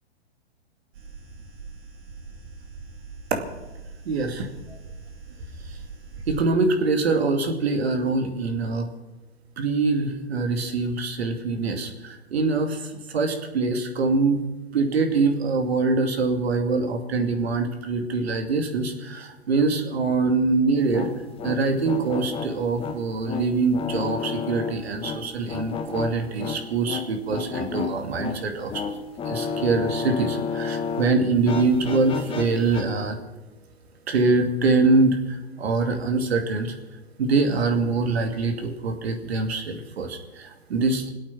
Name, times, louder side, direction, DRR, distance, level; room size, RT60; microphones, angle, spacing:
sound 1, 0.9-6.4, right 4 dB, 55° right, 4.9 m, -41 dB
voice 1, 4.1-4.8 6.3-8.9 9.6-14.4 14.7-21.1 21.4-28.7 29.3-33.2 34.1-36.7 37.2-41.1, right 3 dB, 70° right, 5 dB, 2.6 m, -24 dB
sound 2, 20.8-31.1 31.4-32.8, left 6 dB, 15° left, 1.5 m, -32 dB
23.5 x 8.6 x 6.1 m, 1.1 s
hypercardioid pair, 135°, 32 cm